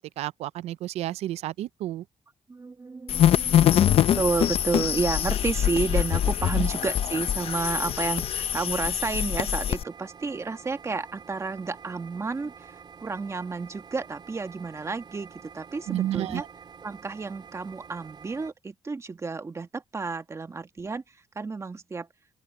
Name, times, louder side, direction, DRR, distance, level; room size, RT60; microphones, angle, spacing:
voice 1, 0.2-2.0 6.6-6.7 15.9-16.5, right 13 dB, 85° right, 0.5 m, -31 dB
voice 2, 2.5-16.4 16.8-22.1, right 4 dB, 25° right, 1.5 m, -31 dB
sound 1, 3.1-9.8, left 10 dB, 65° left, 0.7 m, -24 dB
sound 2, 4.0-18.5, right 6 dB, 45° right, 3.5 m, -48 dB
open air
cardioid pair, 90°, 10 cm